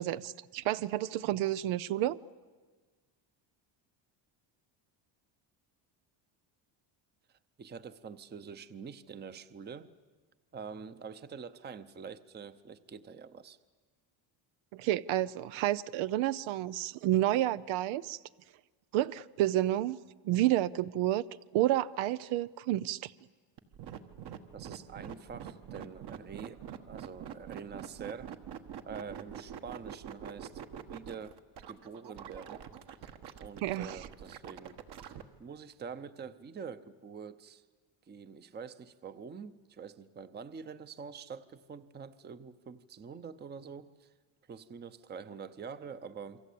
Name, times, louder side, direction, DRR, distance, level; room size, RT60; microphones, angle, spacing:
voice 1, 0.0-2.2 14.7-18.2 18.9-20.0 20.2-21.3 21.5-23.1 33.6-34.0, right 14 dB, 90° right, 16 dB, 0.7 m, -30 dB
voice 2, 7.6-9.9 10.5-13.6 24.5-26.6 26.9-28.3 28.8-31.4 31.7-32.6 33.4-34.8 35.0-37.6 38.1-44.1 44.5-46.4, right 6 dB, 20° right, 14 dB, 0.7 m, -46 dB
sound 1, 23.6-35.2, right 9 dB, 55° right, 1.6 m, -45 dB
28.0 x 23.5 x 8.5 m, 1.4 s
cardioid pair, 150°, 46 cm